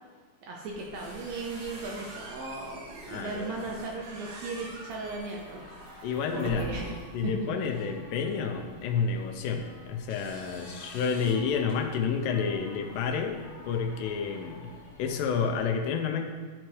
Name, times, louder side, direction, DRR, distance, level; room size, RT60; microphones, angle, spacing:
voice 1, 0.4-6.1 6.3-7.0 7.2-7.5, right 3 dB, 80° right, -1 dB, 1.6 m, -37 dB
sound 1, 0.7-15.6, left 2 dB, 55° left, 0.9 m, -51 dB
sound 2, 0.7-7.2, right 3 dB, 65° right, 2.1 m, -44 dB
voice 2, 3.1-3.6 6.0-6.7 7.1-14.7 15.0-16.2, left 6 dB, 85° left, 4 dB, 2.3 m, -30 dB
sound 3, 4.7-5.4 5.9-6.3 7.1-7.2 7.6-7.7 9.0-9.6 10.1-11.4 11.7-11.8 12.9-13.7, equal, 25° right, 1.9 m, -52 dB
12.0 x 4.5 x 3.1 m, 1.5 s
omnidirectional pair, 4.0 m